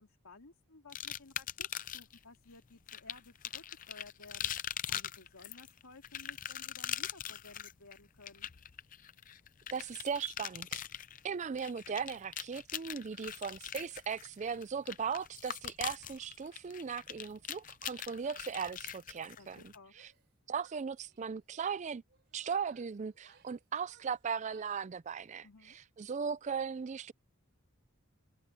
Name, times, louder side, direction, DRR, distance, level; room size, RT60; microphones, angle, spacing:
voice 1, 0.0-1.7 1.9-8.5 19.4-19.9 25.4-25.8, left 3 dB, 80° left, 2.6 m, -56 dB
sound 1, 0.9-2.2 2.9-19.8, left 10 dB, 40° left, 0.6 m, -42 dB
voice 2, 9.7-10.8 11.2-20.1 20.5-22.0 22.3-27.1, right 6 dB, 30° right, 0.3 m, -38 dB
Female speech woman speaking / Yell, 19.9-20.3 20.6-21.4 22.1-24.9, right 6 dB, 50° right, 3.6 m, -66 dB
head